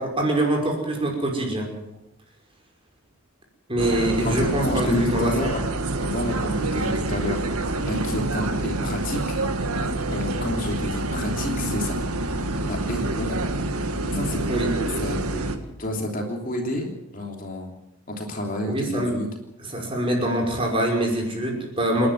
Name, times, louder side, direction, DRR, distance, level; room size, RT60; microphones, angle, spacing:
voice 1, 0.0-1.7 3.7-5.5 14.5-14.7 18.7-19.2 19.7-22.1, right 1 dB, 25° right, 1 dB, 5.6 m, -24 dB
sound 1, 3.8-15.6, right 2 dB, 85° right, 2.1 m, -27 dB
voice 2, 4.0-5.6 6.0-7.6 7.8-9.4 10.1-12.0 12.7-13.4 14.1-14.6 15.0-15.4 15.8-17.7 18.1-19.3, left 1 dB, 40° left, 1 dB, 3.1 m, -29 dB
29.0 x 11.5 x 7.9 m, 0.88 s
head